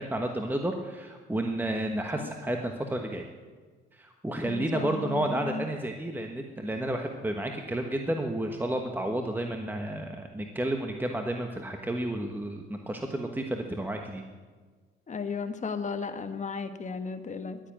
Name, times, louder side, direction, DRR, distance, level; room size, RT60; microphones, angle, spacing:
voice 1, 0.0-3.3 3.9-14.2, right 1 dB, 10° right, 4 dB, 1.2 m, -31 dB
voice 2, 4.4-5.6 15.1-17.6, left 5 dB, 35° left, 8 dB, 1.3 m, -34 dB
12.0 x 9.9 x 8.8 m, 1.4 s
cardioid pair, 90°, 20 cm